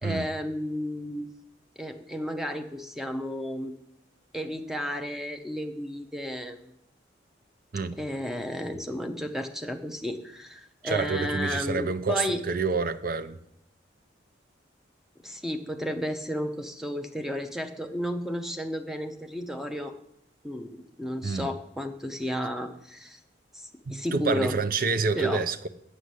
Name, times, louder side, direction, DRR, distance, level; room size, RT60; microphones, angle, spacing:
voice 1, 0.0-1.3 1.8-3.7 4.3-6.6 8.0-12.4 15.2-20.0 20.4-20.7 21.0-23.2 23.9-24.6 25.2-25.4, equal, ahead, 0.7 m, -32 dB
voice 2, 10.8-13.4 21.2-21.5 23.9-25.7, right 4 dB, 50° right, 0.5 m, -28 dB
7.9 x 6.4 x 8.1 m
head